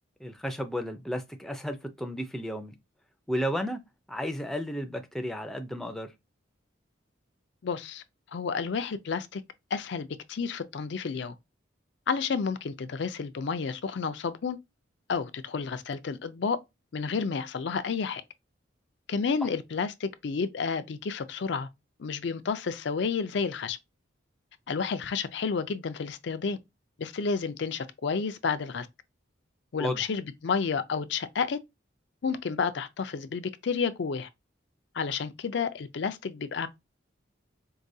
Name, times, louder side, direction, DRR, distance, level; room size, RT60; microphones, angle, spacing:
voice 1, 0.2-2.7 3.3-3.8 4.1-6.1 29.8-30.0, equal, ahead, 0.4 m, -33 dB
voice 2, 7.6-8.0 8.3-9.4 9.7-11.3 12.1-14.6 15.1-16.6 16.9-18.2 19.1-21.7 22.0-23.8 24.7-26.6 27.0-28.9 29.7-31.6 32.2-34.3 34.9-36.7, left 5 dB, 60° left, 0.4 m, -30 dB
4.7 x 2.2 x 2.7 m
head